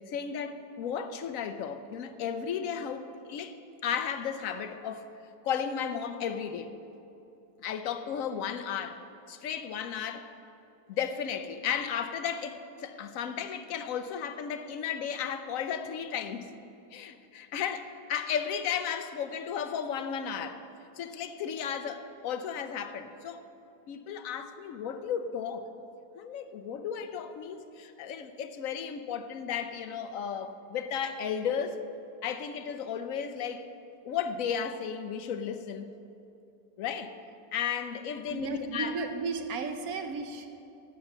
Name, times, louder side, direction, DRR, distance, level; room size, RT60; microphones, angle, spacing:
voice 1, 0.1-3.6 3.8-5.1 5.4-6.8 7.6-10.3 10.9-16.5 16.9-20.6 21.0-23.4 23.9-25.7 26.1-31.8 32.2-33.7 34.0-35.9 36.8-37.1 37.5-38.9, left 7 dB, 65° left, 9 dB, 0.9 m, -34 dB
voice 2, 38.3-40.5, right 4 dB, 65° right, 6 dB, 1.1 m, -34 dB
12.0 x 8.2 x 6.6 m, 2.7 s
omnidirectional pair, 1.8 m